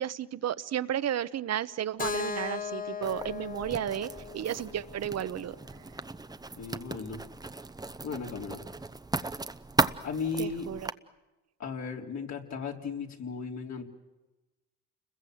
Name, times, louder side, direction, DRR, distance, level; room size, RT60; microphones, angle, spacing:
voice 1, 0.0-5.6 10.4-10.9, right 10 dB, 60° right, 15 dB, 1.0 m, -33 dB
Keyboard (musical), 2.0-5.9, left 5 dB, 30° left, 1.0 m, -38 dB
Writing, 3.0-10.9, right 3 dB, 15° right, 0.8 m, -36 dB
voice 2, 6.6-7.2 8.0-8.6 10.0-10.7 11.6-13.8, left 5 dB, 65° left, 1 dB, 3.7 m, -35 dB
30.0 x 21.5 x 7.9 m, 1.1 s
cardioid pair, 90°, 30 cm